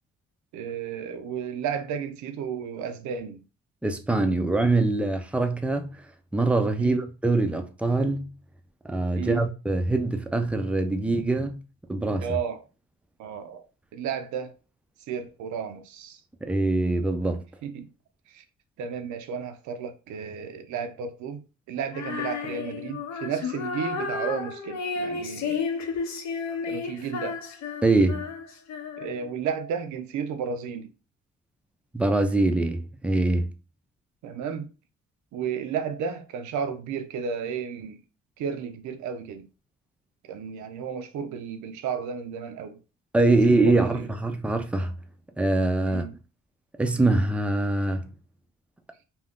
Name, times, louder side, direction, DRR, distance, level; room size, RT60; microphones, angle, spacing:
voice 1, 0.5-3.4 6.8-7.0 9.2-9.5 12.2-12.6 13.2-13.6 13.9-14.6 15.1-16.2 17.6-17.9 18.3-18.4 18.8-25.6 26.6-27.4 29.0-30.9 34.2-34.7 35.3-38.0 38.4-39.5 40.3-42.8 43.2-44.1 45.9-46.1, right 7 dB, 75° right, 0.5 m, -33 dB
voice 2, 3.8-6.0 6.3-8.3 8.9-11.6 11.9-12.3 16.4-17.4 27.8-28.2 31.9-33.5 43.1-44.9 45.4-46.0 46.8-48.1, right 2 dB, 5° right, 0.4 m, -23 dB
Female singing, 21.9-29.3, left 5 dB, 65° left, 0.7 m, -32 dB
2.5 x 2.2 x 3.5 m
cardioid pair, 90°, 30 cm